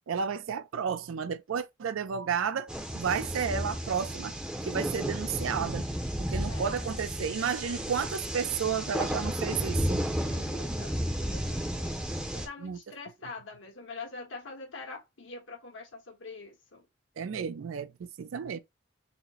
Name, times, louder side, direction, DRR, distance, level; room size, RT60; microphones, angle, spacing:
voice 1, 0.1-4.3 4.6-5.9 6.2-10.1 12.6-12.8 17.2-18.6, right 7 dB, 90° right, 0.4 m, -32 dB
sound 1, 2.7-12.5, equal, 5° right, 0.5 m, -33 dB
voice 2, 6.5-6.9 10.2-12.0 12.3-16.9, left 3 dB, 75° left, 1.3 m, -44 dB
4.2 x 2.0 x 4.2 m
head